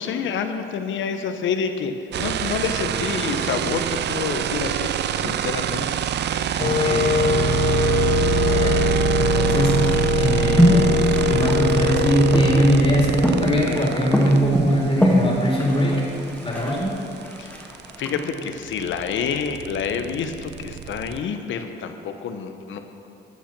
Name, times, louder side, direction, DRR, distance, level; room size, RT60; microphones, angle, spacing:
voice 1, 0.0-4.9 5.1-5.9 17.4-17.5 18.0-22.8, left 6 dB, 75° left, 7 dB, 0.9 m, -28 dB
sound 1, 2.1-14.4 16.5-16.6 16.8-21.2, right 10 dB, 60° right, 0.5 m, -24 dB
Wind instrument woodwind instrument, 6.6-14.6, left 7 dB, 50° left, 0.5 m, -24 dB
voice 2, 6.6-7.6 8.5-8.8 9.2-10.9 11.2-16.1 16.4-17.0, equal, 30° left, -3 dB, 2.8 m, -22 dB
sound 2, 9.3-18.3, equal, 5° left, 1.9 m, -23 dB
14.5 x 5.9 x 5.9 m, 2.7 s
cardioid pair, 90°, 20 cm